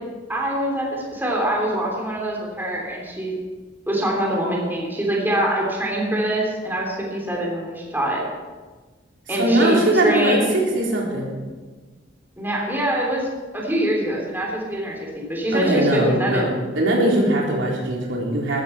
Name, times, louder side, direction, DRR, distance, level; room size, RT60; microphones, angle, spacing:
voice 1, 0.3-3.3 3.9-8.2 9.3-10.5 12.4-13.3 13.5-16.5, right 1 dB, 10° right, -2 dB, 3.4 m, -24 dB
voice 2, 9.3-11.3 15.5-18.6, right 1 dB, 85° right, -3 dB, 3.9 m, -20 dB
15.5 x 13.5 x 4.5 m, 1.4 s
head